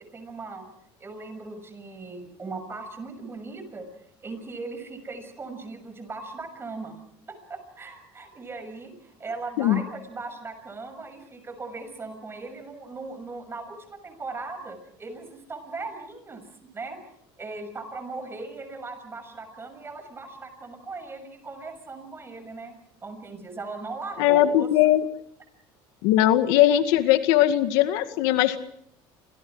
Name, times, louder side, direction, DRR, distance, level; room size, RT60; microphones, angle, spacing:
voice 1, 0.1-0.7 1.0-3.9 4.2-7.0 7.3-17.0 17.4-22.7 23.0-24.9, right 3 dB, 20° right, 9 dB, 6.5 m, -38 dB
voice 2, 24.2-25.0 26.0-28.6, left 13 dB, 90° left, 9 dB, 2.0 m, -20 dB
30.0 x 26.0 x 4.9 m, 0.69 s
cardioid pair, 135°, 11 cm